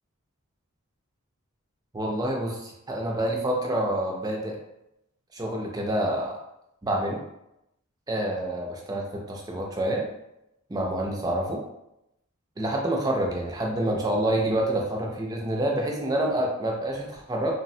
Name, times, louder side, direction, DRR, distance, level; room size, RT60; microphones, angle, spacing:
voice 1, 1.9-4.6 5.3-6.4 6.8-7.2 8.1-10.1 10.7-11.6 12.6-17.5, right 1 dB, 15° right, 0 dB, 0.4 m, -27 dB
3.2 x 2.0 x 2.6 m, 0.86 s
head